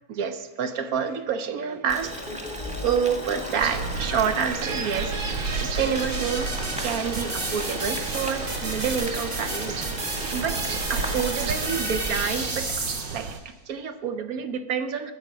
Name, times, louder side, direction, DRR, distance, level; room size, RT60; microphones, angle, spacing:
voice 1, 0.1-2.5 2.8-9.8 10.3-15.1, right 7 dB, 65° right, 9 dB, 0.9 m, -28 dB
Boiling, 1.9-12.5, equal, 5° right, 1.3 m, -36 dB
sound 1, 2.3-13.4, right 2 dB, 35° right, 1.1 m, -33 dB
sound 2, 3.6-13.4, right 5 dB, 85° right, 1.6 m, -33 dB
12.0 x 9.5 x 5.0 m, 1.1 s
omnidirectional pair, 2.1 m